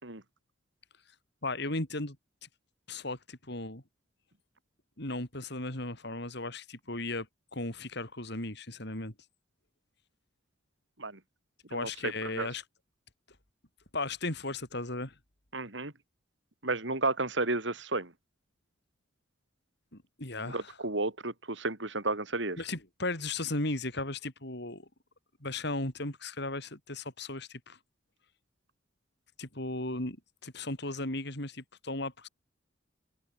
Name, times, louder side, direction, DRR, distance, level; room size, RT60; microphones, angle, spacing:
voice 1, 1.4-2.2 2.4-2.5 2.9-3.8 5.0-7.3 7.5-9.1 11.7-12.6 13.9-15.1 19.9-20.8 22.6-24.9 25.4-27.8 29.4-30.2 30.4-32.3, left 2 dB, 60° left, 6.0 m, -36 dB
voice 2, 11.7-12.5 15.5-15.9 16.6-18.1 20.5-22.6, right 2 dB, 65° right, 3.4 m, -32 dB
head